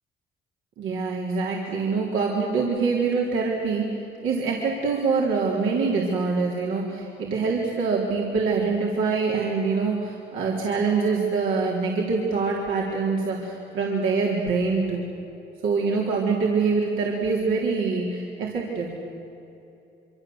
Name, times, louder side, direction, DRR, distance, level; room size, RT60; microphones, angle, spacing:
voice 1, 0.8-3.9 4.2-15.1 15.6-19.0, right 4 dB, 85° right, -3 dB, 4.0 m, -25 dB
26.0 x 25.5 x 8.0 m, 2.9 s
cardioid pair, 90°, 20 cm